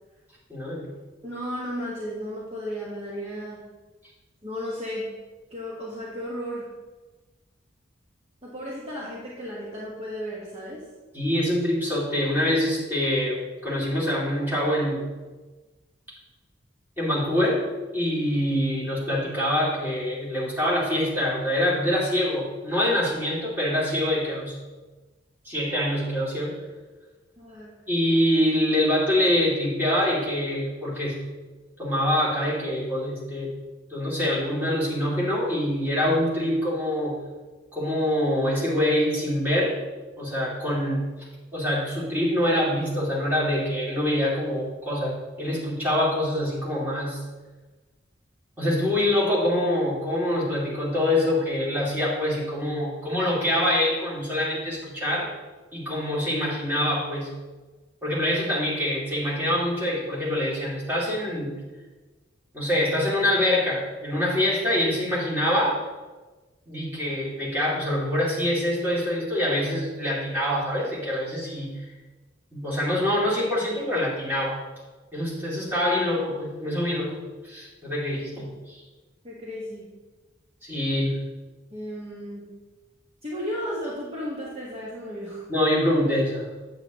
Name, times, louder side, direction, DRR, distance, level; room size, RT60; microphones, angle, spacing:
voice 1, 0.5-0.9 11.1-15.1 17.0-17.6 17.9-24.5 25.4-26.6 27.9-31.2 31.8-33.5 33.9-37.2 37.7-39.8 40.2-41.0 41.5-47.2 48.6-55.3 55.7-57.3 58.0-61.5 62.5-65.8 66.7-71.7 72.5-74.6 75.1-77.2 77.4-78.8 80.6-81.2 85.5-86.4, left 1 dB, 10° right, -7 dB, 2.5 m, -25 dB
voice 2, 1.2-3.6 4.4-5.1 5.5-6.7 8.4-10.8 27.4-27.7 79.2-79.9 81.7-82.5 83.2-85.5, equal, 30° right, -6 dB, 1.2 m, -34 dB
8.6 x 8.0 x 3.0 m, 1.2 s
head